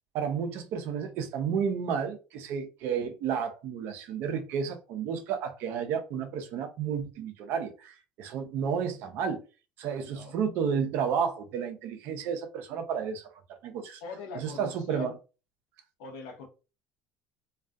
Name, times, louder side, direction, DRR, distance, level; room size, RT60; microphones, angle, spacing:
voice 1, 0.1-9.4 9.8-14.0 14.3-15.1, right 7 dB, 65° right, 0.5 m, -32 dB
voice 2, 10.1-10.4 14.0-15.1 16.0-16.5, left 4 dB, 75° left, 0.7 m, -41 dB
2.4 x 2.3 x 2.3 m
hypercardioid pair, 70°, 4 cm